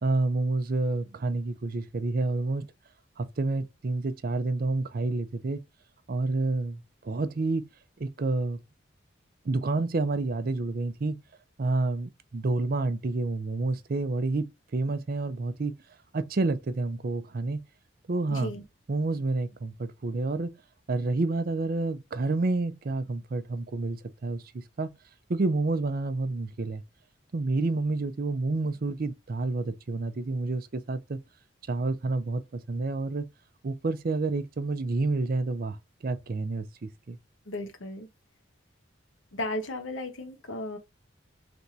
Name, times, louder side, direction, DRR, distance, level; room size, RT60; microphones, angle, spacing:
voice 1, 0.0-2.7 3.2-5.6 6.1-7.7 8.0-8.6 9.5-11.2 11.6-14.5 14.7-15.7 16.1-17.6 18.1-18.5 18.9-20.5 20.9-24.9 25.3-26.8 27.3-31.2 31.7-33.2 33.6-35.8 36.0-37.2, right 3 dB, 45° right, 0.5 m, -29 dB
voice 2, 18.3-18.6 37.5-38.1 39.3-40.8, left 1 dB, 85° left, 1.1 m, -35 dB
3.4 x 2.7 x 4.2 m
head